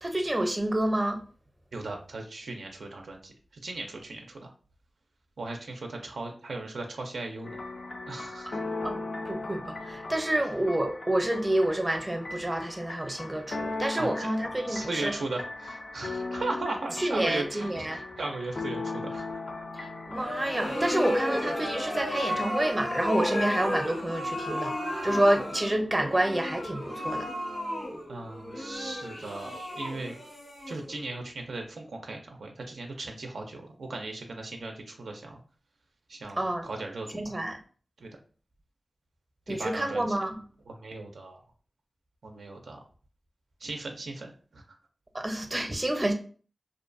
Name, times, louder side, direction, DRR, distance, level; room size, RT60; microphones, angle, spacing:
voice 1, 0.0-1.2 8.8-9.0 9.3-15.1 17.0-18.0 19.8-24.7 25.0-27.3 36.4-36.7 37.1-37.6 39.5-40.3 45.1-46.1, right 1 dB, 25° right, 4 dB, 0.6 m, -28 dB
voice 2, 1.7-3.3 3.6-4.5 5.4-7.6 8.1-8.6 14.0-14.3 14.7-19.7 28.1-30.1 30.7-35.4 36.1-37.3 38.0-38.1 39.5-40.2 40.7-41.4 42.2-42.8 43.6-44.6, right 2 dB, 90° right, 2 dB, 0.4 m, -37 dB
sound 1, 7.4-23.5, left 3 dB, 70° left, 0.3 m, -38 dB
sound 2, 20.1-31.1, left 1 dB, 85° left, 1.2 m, -33 dB
2.5 x 2.2 x 2.5 m, 0.41 s
cardioid pair, 45°, 0 cm